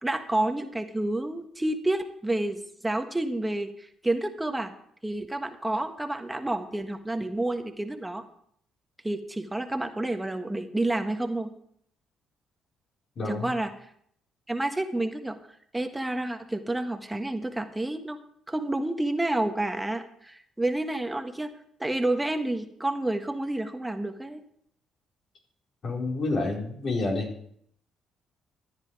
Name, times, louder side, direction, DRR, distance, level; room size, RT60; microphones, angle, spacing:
voice 1, 0.0-4.7 5.0-8.2 9.0-11.5 13.2-13.7 14.5-15.4 15.7-18.2 18.5-21.5 21.8-24.4, right 1 dB, 10° right, 6 dB, 1.5 m, -29 dB
voice 2, 13.2-13.5 25.8-27.4, left 2 dB, 55° left, -1 dB, 4.4 m, -29 dB
14.0 x 9.9 x 4.8 m, 0.67 s
supercardioid pair, 75°, 0 cm